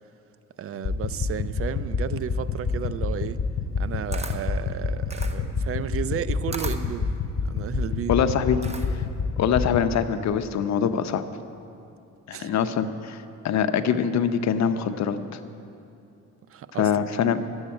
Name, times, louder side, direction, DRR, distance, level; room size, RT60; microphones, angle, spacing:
voice 1, 0.6-3.4 3.8-7.2 7.5-8.1 12.3-12.5 16.5-17.1, right 9 dB, 50° right, 15 dB, 0.5 m, -33 dB
sound 1, 0.8-9.8, left 4 dB, 40° left, 3.2 m, -28 dB
Camera, 3.7-9.2, right 3 dB, 20° right, 0.9 m, -40 dB
voice 2, 8.1-8.6 9.4-11.2 12.3-15.2 16.8-17.4, left 8 dB, 65° left, 10 dB, 0.7 m, -24 dB
11.5 x 7.9 x 8.8 m, 2.7 s
cardioid pair, 90°, 30 cm